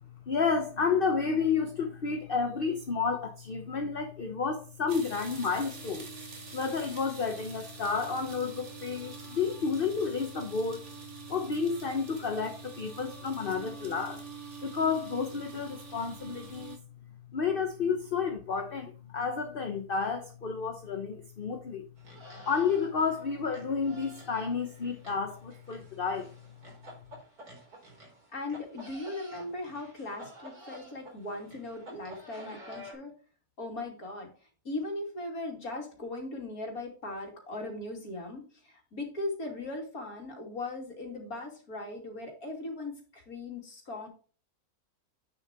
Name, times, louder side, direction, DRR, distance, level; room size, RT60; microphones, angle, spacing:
voice 1, 0.3-6.1 6.5-10.8 11.3-14.2 14.6-16.8 17.3-21.8 22.5-26.3, left 5 dB, 40° left, 1.1 m, -31 dB
sound 1, 4.9-16.8, right 6 dB, 50° right, 2.4 m, -46 dB
sound 2, 22.0-32.9, equal, 70° right, 4.4 m, -50 dB
voice 2, 28.3-33.1 33.6-34.3 34.6-44.1, left 2 dB, 65° left, 3.2 m, -38 dB
9.4 x 7.1 x 3.0 m
omnidirectional pair, 1.6 m